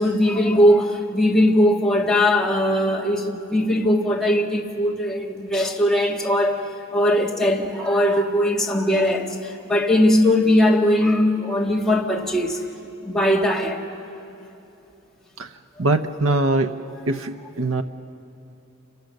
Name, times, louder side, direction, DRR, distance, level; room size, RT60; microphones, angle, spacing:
voice 1, 0.0-6.6 6.9-12.6 13.0-13.8, left 1 dB, 5° left, 1.7 m, -20 dB
voice 2, 15.8-16.7 17.1-17.8, right 2 dB, 75° right, 0.8 m, -22 dB
28.5 x 26.0 x 6.6 m
head